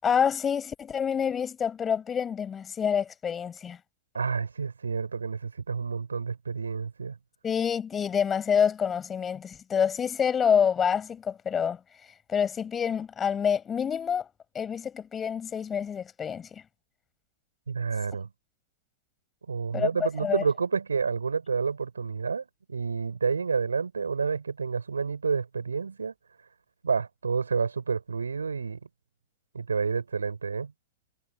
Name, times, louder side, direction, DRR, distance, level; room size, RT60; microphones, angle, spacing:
voice 1, 0.0-3.8 7.4-11.8 12.3-14.3 14.5-16.6 19.7-20.4, left 7 dB, 25° left, 7.9 m, -27 dB
voice 2, 4.1-7.2 17.7-18.3 19.5-26.1 26.8-28.8 29.5-30.7, right 5 dB, 85° right, 4.8 m, -29 dB
hypercardioid pair, 100°, 0 cm